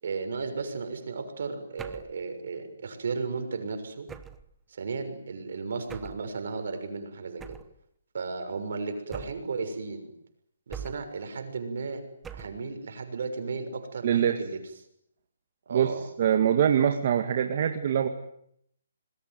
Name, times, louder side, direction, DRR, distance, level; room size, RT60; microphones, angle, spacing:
voice 1, 0.0-4.1 4.7-7.6 8.1-10.1 10.7-12.1 12.3-14.6 15.7-16.0, right 4 dB, 60° right, 7 dB, 6.5 m, -34 dB
sound 1, 1.8-2.2 4.1-4.5 5.9-6.3 7.4-7.8 9.1-9.6 10.7-11.2 12.2-12.7, right 7 dB, 10° right, 1.1 m, -42 dB
voice 2, 14.0-14.4 15.7-15.9 16.2-18.1, right 9 dB, 40° right, 6 dB, 2.0 m, -23 dB
27.0 x 21.5 x 9.4 m, 0.72 s
hypercardioid pair, 165°, 0 cm